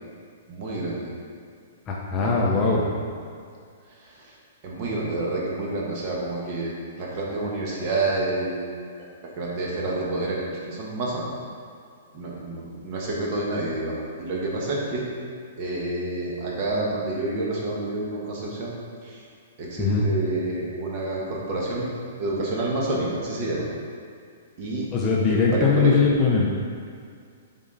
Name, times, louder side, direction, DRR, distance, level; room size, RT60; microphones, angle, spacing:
voice 1, 0.5-1.1 2.2-2.8 4.0-4.4 4.6-8.7 9.0-9.1 9.4-11.3 12.1-15.1 15.6-18.7 19.0-19.2 19.6-21.9 22.2-23.6 24.6-24.9 25.3-26.0, right 2 dB, 35° right, -4 dB, 1.3 m, -28 dB
voice 2, 1.9-2.9 19.8-20.0 24.9-26.6, left 4 dB, 20° left, -3 dB, 0.6 m, -21 dB
7.2 x 4.2 x 3.9 m, 2.2 s
hypercardioid pair, 170°, 0 cm